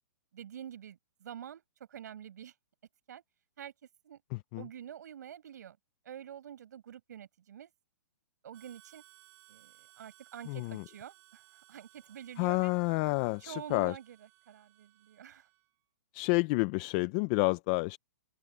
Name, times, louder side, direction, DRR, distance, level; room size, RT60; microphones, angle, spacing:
voice 1, 0.3-1.6 1.9-2.5 3.1-3.2 3.6-3.7 4.0-4.2 4.6-5.8 6.0-7.7 8.4-9.0 9.5-11.4 11.7-12.7 13.4-14.2 14.5-15.5, right 9 dB, 60° right, 5.9 m, -47 dB
voice 2, 4.3-4.7 10.5-10.8 12.4-14.0 16.1-18.0, left 26 dB, 25° left, 0.4 m, -29 dB
Harmonica, 8.5-15.8, right 21 dB, 25° right, 2.7 m, -62 dB
open air
hypercardioid pair, 160°, 10 cm